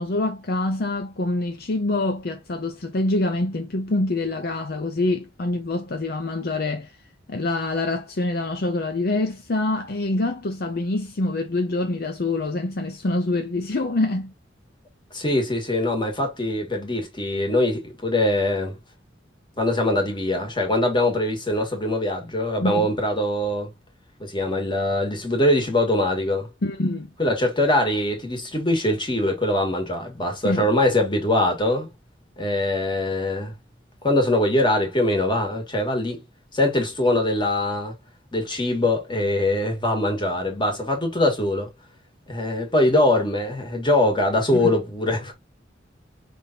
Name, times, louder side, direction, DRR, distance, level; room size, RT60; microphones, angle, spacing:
voice 1, 0.0-6.9 7.3-14.3 22.6-22.9 26.6-27.1 30.4-30.7 44.5-44.7, left 2 dB, 55° left, 0.7 m, -25 dB
voice 2, 15.1-18.8 19.6-23.7 24.2-26.5 27.2-31.9 32.4-33.5 34.0-36.2 36.5-37.9 38.3-41.7 42.3-45.3, left 1 dB, 25° left, 1.8 m, -22 dB
5.2 x 3.6 x 2.8 m
head